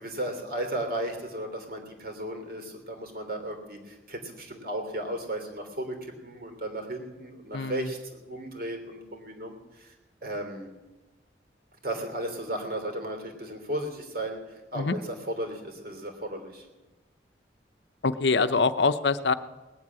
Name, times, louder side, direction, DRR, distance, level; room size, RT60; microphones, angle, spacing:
voice 1, 0.0-9.9 10.2-10.7 11.8-16.7, right 1 dB, 55° right, 4 dB, 3.1 m, -35 dB
voice 2, 7.5-7.9 14.7-14.9 18.0-19.3, left 4 dB, 75° left, 12 dB, 0.7 m, -24 dB
19.0 x 7.6 x 9.6 m, 1.1 s
head